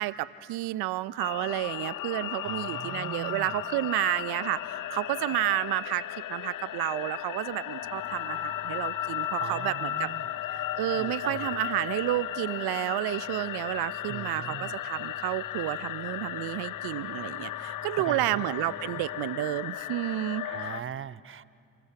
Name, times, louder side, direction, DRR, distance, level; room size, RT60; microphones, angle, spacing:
voice 1, 0.0-10.1 10.5-20.5, right 17 dB, 70° right, 19 dB, 0.7 m, -31 dB
sound 1, 1.2-20.8, left 13 dB, 50° left, 0.7 m, -35 dB
voice 2, 2.4-3.6 9.4-10.3 10.9-11.5 14.1-14.8 18.0-18.6 18.9-19.0 20.4-21.4, right 8 dB, 30° right, 17 dB, 0.7 m, -40 dB
sound 2, 7.8-9.5 9.9-12.4 13.1-19.5, equal, 5° left, 8.0 m, -55 dB
29.5 x 27.5 x 5.9 m, 2.4 s
hypercardioid pair, 45°, 40 cm